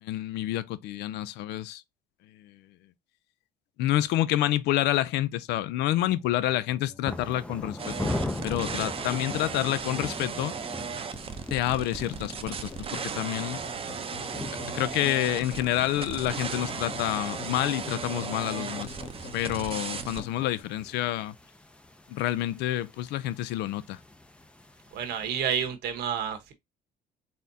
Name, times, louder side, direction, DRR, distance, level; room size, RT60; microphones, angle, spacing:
voice 1, 0.0-1.8 2.3-2.6 3.8-8.1 8.4-10.5 11.5-13.6 14.7-19.0 19.3-21.4 22.1-24.0, left 14 dB, 80° left, 0.5 m, -28 dB
sound 1, 5.4-20.6, left 5 dB, 35° left, 0.9 m, -47 dB
sound 2, 7.0-25.7, left 2 dB, 5° left, 0.5 m, -41 dB
sound 3, 7.8-20.2, right 6 dB, 35° right, 0.6 m, -36 dB
voice 2, 24.9-26.5, right 8 dB, 75° right, 1.2 m, -30 dB
4.2 x 3.7 x 2.7 m
cardioid pair, 110°, 17 cm